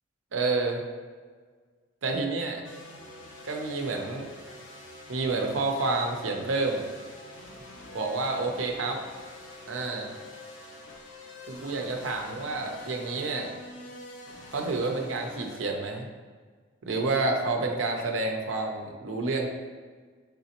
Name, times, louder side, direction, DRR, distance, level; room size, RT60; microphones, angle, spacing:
voice 1, 0.3-0.8 2.0-2.6 3.4-4.3 5.1-6.8 7.9-9.0 9.7-10.1 11.5-13.5 14.5-16.1 16.8-19.5, right 3 dB, 75° right, 2 dB, 0.6 m, -29 dB
sound 1, 2.6-15.6, left 1 dB, 75° left, 0.6 m, -46 dB
3.9 x 3.5 x 2.9 m, 1.5 s
head